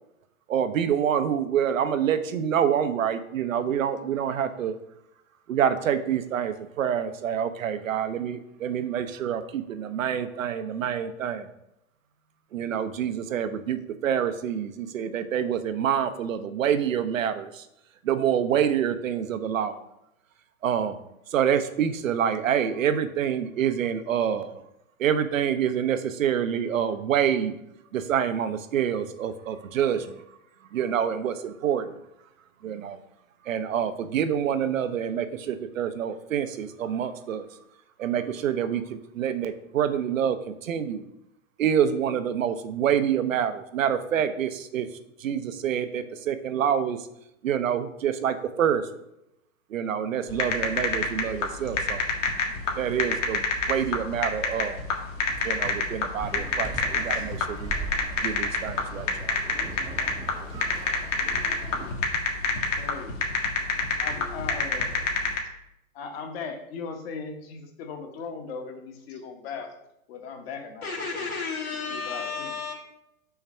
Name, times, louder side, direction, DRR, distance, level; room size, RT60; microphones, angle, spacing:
voice 1, 0.5-4.7 5.5-11.5 12.5-17.7 18.0-19.8 20.6-21.0 21.3-24.6 25.0-27.5 27.9-30.2 30.7-31.9 32.6-33.0 33.4-37.5 38.0-41.1 41.6-44.9 45.2-47.0 47.4-48.8 49.7-52.0 52.8-54.8 55.4-57.8 58.2-59.4, right 8 dB, 65° right, 10 dB, 0.7 m, -27 dB
sound 1, 50.3-65.4, left 4 dB, 60° left, 1.6 m, -27 dB
sound 2, 56.2-61.9, right 3 dB, 10° right, 0.7 m, -39 dB
voice 2, 62.8-63.2 64.0-65.0 65.9-69.7 70.1-70.9 71.7-72.6, left 5 dB, 45° left, 4 dB, 1.2 m, -38 dB
voice 3, 70.8-72.7, left 4 dB, 80° left, -2 dB, 2.4 m, -32 dB
5.7 x 3.2 x 5.6 m, 0.85 s
hypercardioid pair, 125°, 42 cm